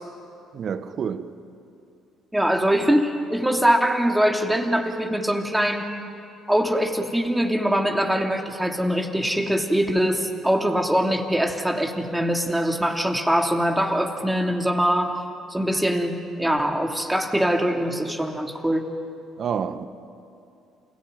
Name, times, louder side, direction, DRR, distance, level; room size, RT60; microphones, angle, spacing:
voice 1, 0.5-1.3 19.4-19.9, right 7 dB, 55° right, 1.2 m, -28 dB
voice 2, 2.3-5.9 6.5-15.2 15.5-18.9, equal, 10° right, 3.0 m, -23 dB
28.5 x 17.0 x 9.3 m
hypercardioid pair, 55°, 0 cm